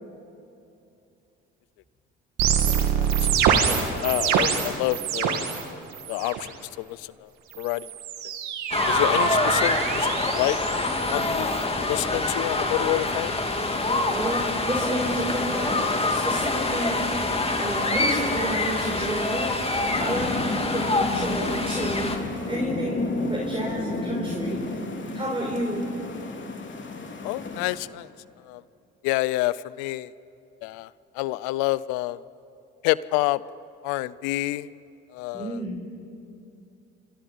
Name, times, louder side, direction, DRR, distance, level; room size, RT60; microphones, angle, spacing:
sound 1, 2.4-5.6 5.9-6.5 7.5-11.6, right 8 dB, 75° right, 2.5 m, -26 dB
voice 1, 2.7-3.3 3.5-3.7 4.0-5.5 6.1-7.3 7.6-7.9 8.9-10.6 11.1-11.6 11.9-13.3 27.2-28.1 28.5-28.6 29.0-30.1 30.6-30.9 31.2-32.2 32.8-33.4 33.8-34.7 35.1-35.6, left 18 dB, 85° left, 20 dB, 0.6 m, -28 dB
sound 2, 8.7-22.2, left 2 dB, 20° left, 3.0 m, -26 dB
sound 3, 13.6-27.8, left 3 dB, 40° left, 3.3 m, -34 dB
voice 2, 14.1-17.3 17.6-19.6 20.0-22.1 22.5-24.9 25.1-25.8 35.3-35.8, right 1 dB, 15° right, -3 dB, 5.7 m, -30 dB
29.0 x 25.5 x 5.6 m, 2.7 s
supercardioid pair, 65°, 30 cm